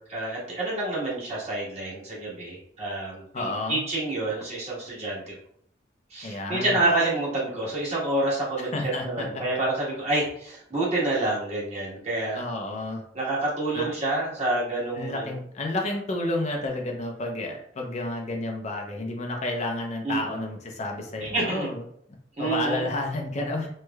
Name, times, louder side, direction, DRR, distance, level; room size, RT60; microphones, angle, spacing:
voice 1, 0.1-5.3 6.1-12.4 13.1-15.4 20.0-20.4 21.2-21.7 22.4-22.9, right 2 dB, 35° right, -6 dB, 1.4 m, -28 dB
voice 2, 3.3-3.8 6.2-6.8 8.6-9.4 12.3-13.0 13.7-13.9 15.0-21.8 22.4-23.7, left 2 dB, 40° left, 1 dB, 0.5 m, -31 dB
3.2 x 3.1 x 2.3 m, 0.66 s
head